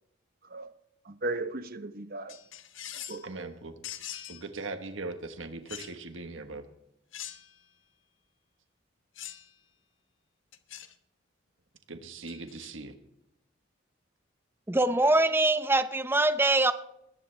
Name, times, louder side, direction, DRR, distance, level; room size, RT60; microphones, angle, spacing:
voice 1, 1.0-2.4 3.1-3.5, right 2 dB, 50° right, 1.0 m, -36 dB
sound 1, 2.3-3.3 3.8-4.4 5.7-6.0 7.1-7.7 9.2-9.5 10.5-10.9 12.3-12.7, left 11 dB, 80° left, 1.1 m, -43 dB
voice 2, 3.2-3.7 4.3-6.6 11.9-12.9, right 3 dB, 85° right, 1.4 m, -40 dB
voice 3, 14.7-16.7, right 2 dB, 10° right, 0.7 m, -23 dB
21.0 x 15.5 x 3.4 m
head